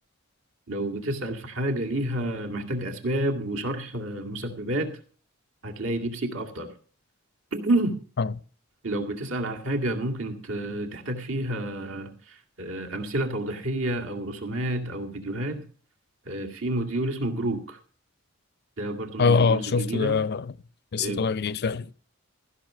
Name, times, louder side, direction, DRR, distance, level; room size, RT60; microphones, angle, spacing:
voice 1, 0.7-4.9 5.6-6.7 7.5-8.0 8.8-15.7 16.3-17.8 18.8-20.2 21.0-21.3, right 1 dB, 70° right, 2.2 m, -29 dB
voice 2, 19.2-20.5 20.9-21.9, left 4 dB, 50° left, 0.5 m, -23 dB
15.5 x 6.1 x 6.7 m
head